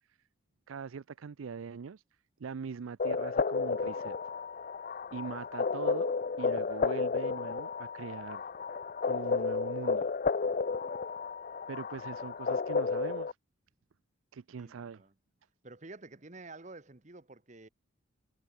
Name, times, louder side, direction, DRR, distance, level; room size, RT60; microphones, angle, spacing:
voice 1, 0.7-2.0 2.4-4.1 5.1-6.1 6.4-8.5 9.0-10.1 11.7-13.4 14.3-15.0, right 5 dB, 85° right, 0.5 m, -42 dB
sound 1, 3.0-13.3, left 4 dB, 45° left, 0.4 m, -32 dB
voice 2, 14.6-15.1 15.6-17.7, right 2 dB, 35° right, 1.3 m, -50 dB
head